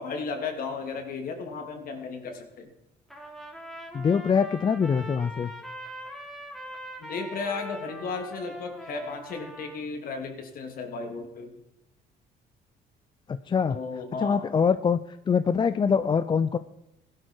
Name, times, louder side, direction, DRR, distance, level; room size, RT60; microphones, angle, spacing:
voice 1, 0.0-2.7 7.0-11.5 13.7-14.4, left 4 dB, 60° left, 4 dB, 3.1 m, -34 dB
Trumpet, 3.1-9.8, equal, ahead, 3.4 m, -42 dB
voice 2, 3.9-5.5 13.3-13.8 14.2-16.6, left 6 dB, 30° left, 13 dB, 0.5 m, -24 dB
16.0 x 12.0 x 4.7 m, 0.90 s
cardioid pair, 110°, 17 cm